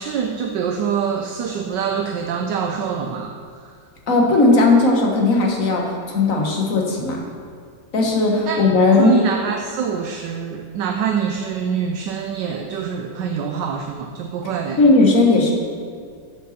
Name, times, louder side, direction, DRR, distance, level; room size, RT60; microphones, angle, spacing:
voice 1, 0.0-3.7 8.5-8.6 8.9-14.8, right 7 dB, 75° right, 4 dB, 1.2 m, -25 dB
voice 2, 4.1-7.2 7.9-9.1 14.8-15.5, left 3 dB, 45° left, 0 dB, 1.6 m, -16 dB
13.5 x 5.7 x 4.2 m, 2.2 s
omnidirectional pair, 2.1 m